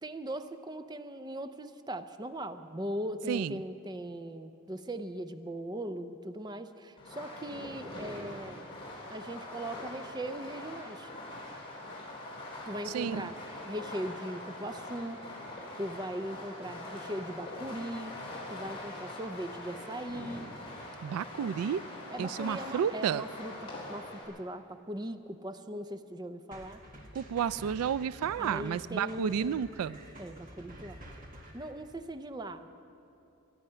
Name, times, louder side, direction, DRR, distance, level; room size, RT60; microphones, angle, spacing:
voice 1, 0.0-8.6 9.1-11.1 12.7-13.4 13.6-15.2 15.8-18.1 18.5-20.5 22.1-26.8 28.4-29.6 30.2-31.0 31.5-32.7, right 1 dB, 20° right, 9 dB, 0.5 m, -39 dB
Fireworks, 7.0-24.2, left 1 dB, 25° left, 3.7 m, -43 dB
voice 2, 12.9-13.3 21.0-21.8 22.2-23.2 27.2-30.0, right 8 dB, 80° right, 18 dB, 0.3 m, -31 dB
sound 1, 26.5-31.7, right 1 dB, 40° right, 1.8 m, -49 dB
24.5 x 9.7 x 5.7 m, 2.8 s
head